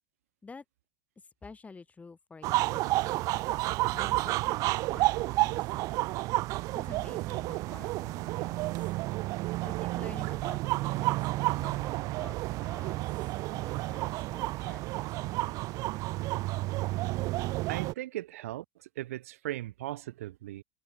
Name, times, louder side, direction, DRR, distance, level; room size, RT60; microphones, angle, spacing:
voice 1, 1.4-3.4 3.9-5.6 5.9-6.0 6.7-8.7 9.6-13.0 13.5-15.8, left 4 dB, 15° left, 4.2 m, -50 dB
sound 1, 2.4-17.9, right 20 dB, 45° right, 0.4 m, -31 dB
voice 2, 17.7-20.6, right 15 dB, 70° right, 1.6 m, -38 dB
figure-of-eight pair, 75°, 8 cm